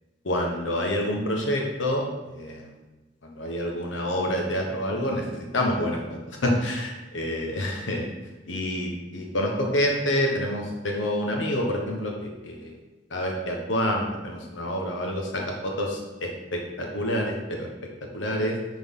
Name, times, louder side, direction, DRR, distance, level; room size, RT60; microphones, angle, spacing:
voice 1, 0.2-2.0 2.3-2.7 3.3-8.1 8.5-12.7 13.1-17.7 18.1-18.6, left 1 dB, 85° left, 1 dB, 1.1 m, -27 dB
10.0 x 3.9 x 3.7 m, 1.1 s
head